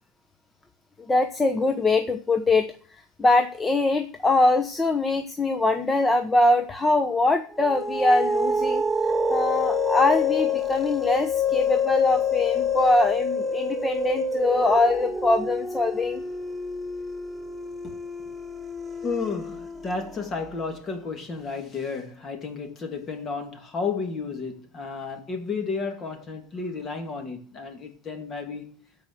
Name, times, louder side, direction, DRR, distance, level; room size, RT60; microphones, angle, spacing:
voice 1, 1.0-16.2, left 2 dB, 15° left, 1.0 m, -23 dB
sound 1, 7.5-20.4, left 3 dB, ahead, 1.3 m, -27 dB
voice 2, 19.0-28.8, left 4 dB, 35° left, 2.7 m, -32 dB
13.0 x 5.0 x 7.8 m
supercardioid pair, 110°, 0 cm